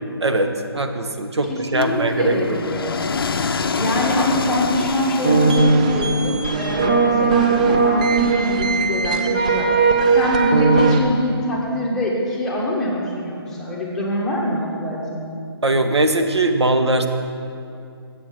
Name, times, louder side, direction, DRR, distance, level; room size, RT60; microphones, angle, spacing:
voice 1, 0.2-2.6 15.6-17.1, right 2 dB, 85° right, 6 dB, 1.1 m, -20 dB
voice 2, 1.4-2.9 3.8-15.4, left 1 dB, 5° left, -5 dB, 1.0 m, -24 dB
sound 1, 1.8-6.2, left 5 dB, 60° left, 0.5 m, -26 dB
sound 2, 5.2-11.0, right 4 dB, 20° right, 0.3 m, -18 dB
7.7 x 7.3 x 6.5 m, 2.5 s
hypercardioid pair, 160°, 14 cm